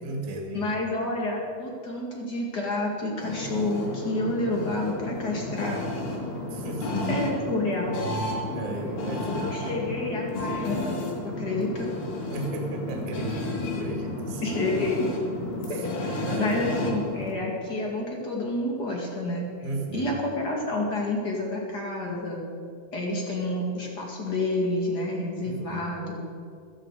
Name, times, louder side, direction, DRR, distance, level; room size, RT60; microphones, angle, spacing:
voice 1, 0.0-0.7 6.5-7.3 8.5-9.6 12.3-14.6 15.7-15.8 16.2-16.9 19.6-20.2 25.4-25.8, right 2 dB, 45° right, 1 dB, 2.5 m, -35 dB
voice 2, 0.5-5.9 7.1-8.0 9.3-10.9 11.2-11.9 14.4-15.1 15.7-19.5 19.9-22.4 22.9-26.2, left 2 dB, 30° left, -1 dB, 2.2 m, -29 dB
sound 1, 3.2-17.3, left 1 dB, 65° left, 3.7 m, -32 dB
15.5 x 14.5 x 5.0 m, 2.3 s
omnidirectional pair, 4.5 m